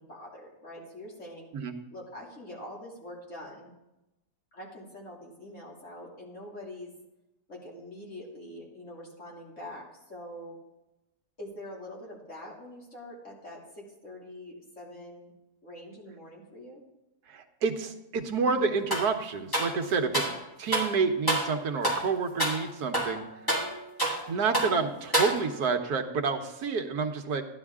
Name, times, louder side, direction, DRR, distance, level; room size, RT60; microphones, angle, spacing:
voice 1, 0.0-1.5 1.9-3.7 4.5-6.9 7.5-10.6 11.4-15.3 15.6-16.8 20.0-20.4, left 1 dB, 50° left, -3 dB, 3.2 m, -44 dB
voice 2, 17.3-20.3 20.6-23.3 24.3-27.4, right 5 dB, 85° right, 6 dB, 1.5 m, -29 dB
sound 1, 18.9-19.1 19.5-20.4 20.7-20.9 21.3-21.5 21.8-22.1 22.4-22.6 22.9-24.3 24.5-24.8 25.1-25.7, right 1 dB, 15° left, 1.8 m, -28 dB
14.0 x 10.5 x 3.6 m, 0.96 s
omnidirectional pair, 1.6 m